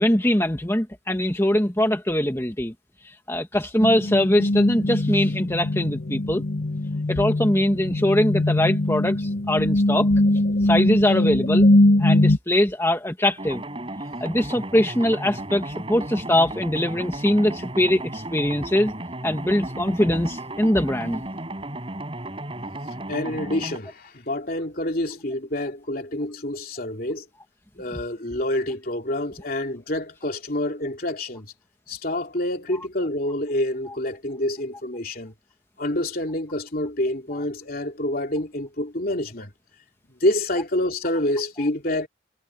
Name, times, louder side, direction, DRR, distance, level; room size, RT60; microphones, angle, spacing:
voice 1, 0.0-2.7 3.0-6.4 7.1-10.1 10.6-11.7 12.0-13.6 14.2-18.9 19.2-21.2, left 1 dB, 15° left, 1.6 m, -22 dB
sound 1, 3.8-12.4, left 1 dB, 75° left, 1.0 m, -21 dB
sound 2, 13.4-23.8, right 1 dB, 30° right, 4.9 m, -34 dB
voice 2, 23.1-27.3 27.8-31.5 31.9-35.3 35.8-39.5 40.2-42.1, left 1 dB, 50° left, 3.2 m, -27 dB
head